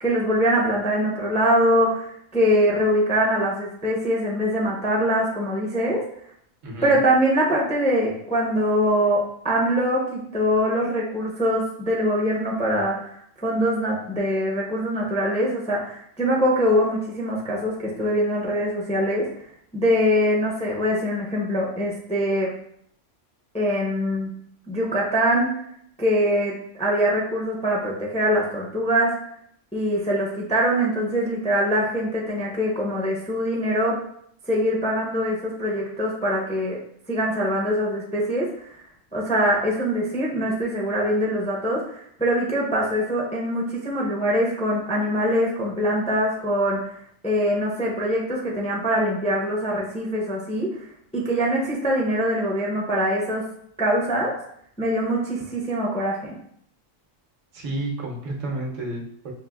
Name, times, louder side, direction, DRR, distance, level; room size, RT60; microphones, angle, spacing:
voice 1, 0.0-6.0 6.8-19.3 19.7-22.5 23.5-24.3 24.7-25.6 26.0-29.1 29.7-34.0 34.5-36.8 37.1-38.8 39.1-46.9 47.2-50.7 51.1-53.4 53.8-54.3 54.8-56.4, equal, 10° left, -3 dB, 0.4 m, -23 dB
voice 2, 6.6-7.0 57.5-59.3, right 2 dB, 80° right, -1 dB, 1.2 m, -31 dB
5.5 x 2.5 x 2.3 m, 0.67 s
omnidirectional pair, 1.3 m